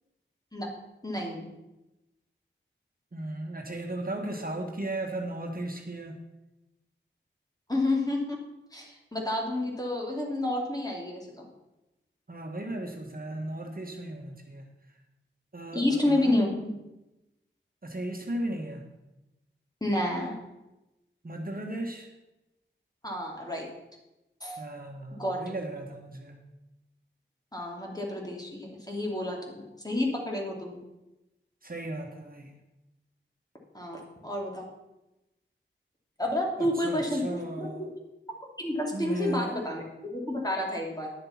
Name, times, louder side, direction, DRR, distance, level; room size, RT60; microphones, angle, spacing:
voice 1, 1.0-1.4 7.7-8.4 8.7-11.5 15.7-16.8 19.8-20.3 23.0-23.7 24.4-24.6 25.1-25.5 27.5-30.8 33.7-34.6 36.2-37.8 38.6-41.1, left 1 dB, 20° left, -1 dB, 2.9 m, -30 dB
voice 2, 3.1-6.2 12.3-14.6 15.5-16.4 17.8-18.9 21.2-22.1 24.6-26.4 31.6-32.5 36.6-37.9 38.9-39.6, right 1 dB, 45° right, 2 dB, 1.5 m, -36 dB
10.5 x 6.7 x 5.8 m, 0.98 s
wide cardioid pair, 50°, 20 cm